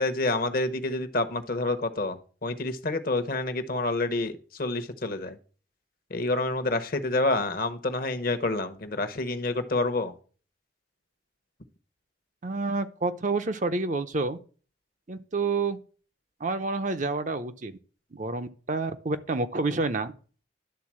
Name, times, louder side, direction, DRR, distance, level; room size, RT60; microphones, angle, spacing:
voice 1, 0.0-5.4 6.1-10.1, left 2 dB, 50° left, 0.9 m, -28 dB
voice 2, 12.4-14.4 15.1-15.8 16.4-17.8 18.1-20.1, right 3 dB, 40° right, 0.6 m, -29 dB
11.5 x 3.9 x 7.5 m
head